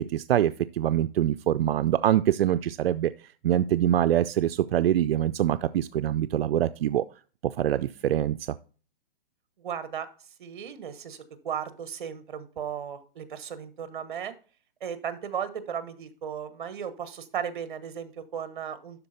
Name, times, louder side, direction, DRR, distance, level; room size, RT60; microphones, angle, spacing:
voice 1, 0.0-3.1 3.4-7.0 7.4-8.4, right 11 dB, 85° right, 12 dB, 0.4 m, -24 dB
voice 2, 9.6-10.1 10.4-14.3 14.8-19.1, right 8 dB, 55° right, 12 dB, 1.2 m, -35 dB
12.0 x 4.2 x 4.2 m, 0.38 s
hypercardioid pair, 170°, 29 cm